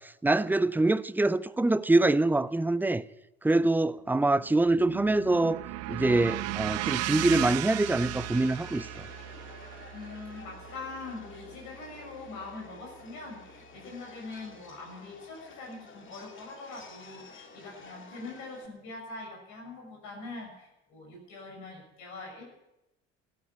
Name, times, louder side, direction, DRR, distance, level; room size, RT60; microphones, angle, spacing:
voice 1, 0.0-3.0 3.4-5.6 5.9-8.9, right 2 dB, 5° right, 0.5 m, -25 dB
sound 1, 4.4-12.5, right 16 dB, 50° right, 0.6 m, -36 dB
Subway metro underground, 8.1-18.7, left 4 dB, 35° left, 2.4 m, -51 dB
voice 2, 9.9-22.4, left 3 dB, 60° left, 6.7 m, -43 dB
12.5 x 11.5 x 8.4 m
hypercardioid pair, 60°, 33 cm